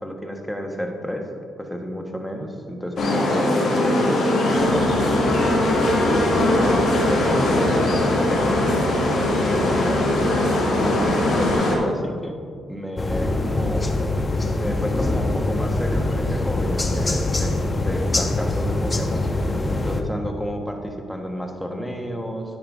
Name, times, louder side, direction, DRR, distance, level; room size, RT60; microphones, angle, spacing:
voice 1, 0.0-1.2 1.6-5.1 6.0-10.1 10.7-12.3 12.7-13.9 14.5-19.3 19.8-22.6, equal, 5° left, 2 dB, 1.4 m, -31 dB
sound 1, 3.0-11.7, left 1 dB, 70° left, 2.5 m, -20 dB
sound 2, 4.5-11.5, left 2 dB, 50° left, 2.1 m, -32 dB
sound 3, 13.0-20.0, left 2 dB, 25° left, 0.9 m, -23 dB
11.5 x 9.6 x 2.7 m, 2.1 s
cardioid pair, 75°, 0 cm